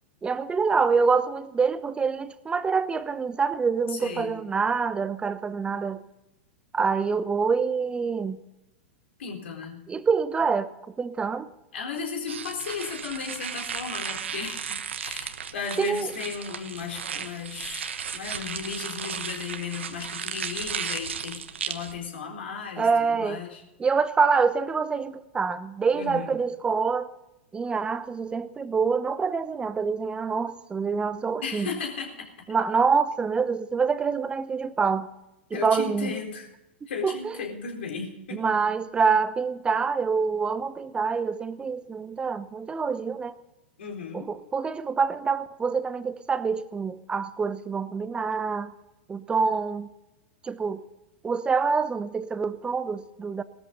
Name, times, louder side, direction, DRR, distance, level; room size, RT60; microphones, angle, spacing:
voice 1, 0.2-6.0 6.7-8.4 9.9-10.7 11.0-11.5 15.8-16.1 22.8-23.4 23.8-27.1 27.5-31.7 32.5-35.1 35.5-36.1 37.0-37.4 38.3-43.3 44.1-48.7 49.1-49.9 50.4-50.8 51.2-53.4, right 5 dB, 15° right, 0.9 m, -26 dB
voice 2, 3.9-4.3 9.2-9.9 11.7-23.6 25.9-26.4 31.4-32.3 35.5-36.5 36.9-38.5 43.8-44.3, left 6 dB, 70° left, 4.0 m, -35 dB
sound 1, 12.3-21.9, right 7 dB, 80° right, 1.2 m, -35 dB
18.5 x 13.5 x 4.0 m
hypercardioid pair, 105°, 6 cm